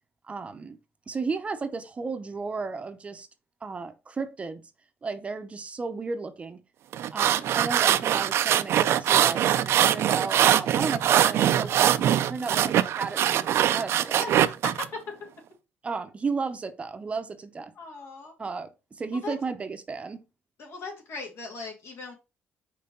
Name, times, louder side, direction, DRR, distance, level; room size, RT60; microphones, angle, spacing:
voice 1, 0.3-0.8 1.1-3.3 3.6-4.6 5.0-6.6 7.1-14.2 15.8-17.7 18.4-20.2, right 4 dB, 25° right, 0.7 m, -34 dB
sound 1, 6.9-14.9, right 11 dB, 65° right, 0.5 m, -22 dB
voice 2, 14.2-15.0 17.8-18.3 19.2-19.3 20.6-22.1, left 3 dB, 65° left, 2.3 m, -38 dB
5.7 x 3.3 x 5.3 m
cardioid pair, 125°, 5 cm